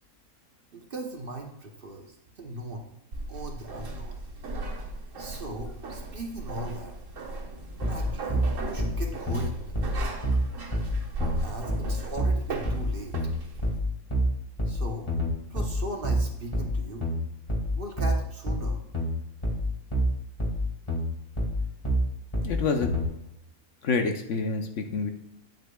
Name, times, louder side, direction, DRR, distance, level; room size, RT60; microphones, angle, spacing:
voice 1, 0.7-2.9 3.3-4.2 5.2-7.0 7.9-9.8 11.4-13.2 14.7-15.1 15.5-17.1 17.7-18.8, right 1 dB, 45° right, 2 dB, 1.0 m, -38 dB
sound 1, 3.1-13.8, right 2 dB, 60° right, 1.6 m, -36 dB
sound 2, 7.8-23.1, equal, 20° left, 1.7 m, -27 dB
voice 2, 22.4-23.0 23.8-25.1, left 4 dB, 60° left, 5 dB, 1.0 m, -27 dB
9.3 x 8.0 x 2.3 m, 0.82 s
omnidirectional pair, 1.5 m